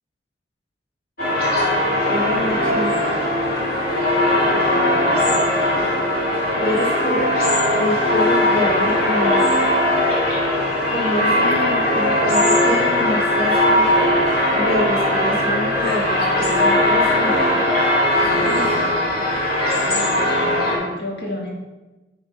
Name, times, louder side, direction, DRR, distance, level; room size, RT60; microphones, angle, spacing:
sound 1, 1.2-20.8, left 1 dB, 55° left, 2.5 m, -19 dB
voice 1, 2.1-2.9 6.5-7.3 7.7-9.5 10.9-13.8 14.5-17.6 18.3-18.9, left 1 dB, 30° left, -4 dB, 1.6 m, -26 dB
voice 2, 4.6-5.3 19.1-19.3 19.8-21.5, left 1 dB, 70° left, -2 dB, 2.3 m, -33 dB
10.5 x 4.2 x 5.7 m, 1.1 s
head